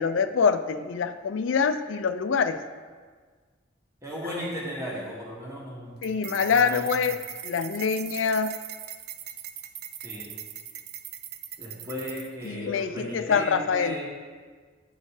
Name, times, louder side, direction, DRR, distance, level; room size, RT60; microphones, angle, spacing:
voice 1, 0.0-2.6 6.0-8.6 12.4-14.0, left 6 dB, 80° left, 10 dB, 0.4 m, -25 dB
voice 2, 4.0-6.1 6.4-6.9 10.0-10.3 11.6-14.1, equal, 15° right, -5 dB, 1.6 m, -36 dB
sound 1, 6.0-12.5, right 10 dB, 55° right, 0.4 m, -40 dB
10.0 x 4.3 x 4.8 m, 1.5 s
head